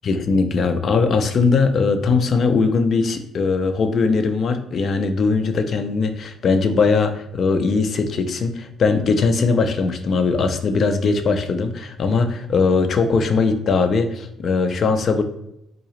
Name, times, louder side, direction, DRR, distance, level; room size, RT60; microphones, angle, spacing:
voice 1, 0.0-15.2, left 4 dB, 50° left, 7 dB, 0.4 m, -20 dB
3.8 x 2.8 x 3.0 m, 0.79 s
cardioid pair, 125°, 0 cm